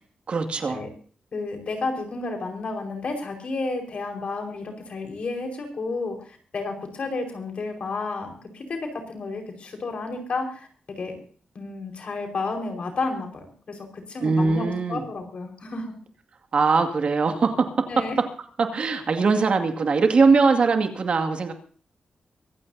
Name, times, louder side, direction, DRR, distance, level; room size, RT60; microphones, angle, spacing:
voice 1, 0.3-0.8 14.2-15.0 16.5-18.1 18.6-21.5, right 4 dB, 50° right, 5 dB, 2.2 m, -21 dB
voice 2, 1.3-8.8 9.1-10.7 11.0-11.1 11.5-16.0 17.9-18.2, left 3 dB, 55° left, 4 dB, 4.9 m, -31 dB
24.5 x 15.5 x 2.8 m, 0.44 s
wide cardioid pair, 140°, 2 cm